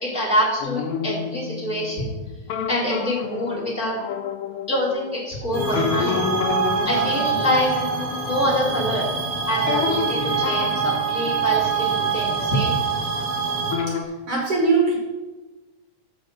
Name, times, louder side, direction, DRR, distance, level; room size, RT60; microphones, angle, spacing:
voice 1, 0.0-2.1 2.7-4.0 4.7-6.3 6.8-7.7 8.3-9.0 9.5-12.8, equal, 25° left, -9 dB, 2.4 m, -25 dB
sound 1, 0.6-5.2 5.7-13.4 13.7-14.0, left 7 dB, 85° left, 1.2 m, -30 dB
sound 2, 5.5-13.7, right 6 dB, 35° right, 1.6 m, -24 dB
voice 2, 14.3-15.0, right 4 dB, 55° right, -3 dB, 2.5 m, -21 dB
6.9 x 5.3 x 6.5 m, 1.2 s
omnidirectional pair, 3.5 m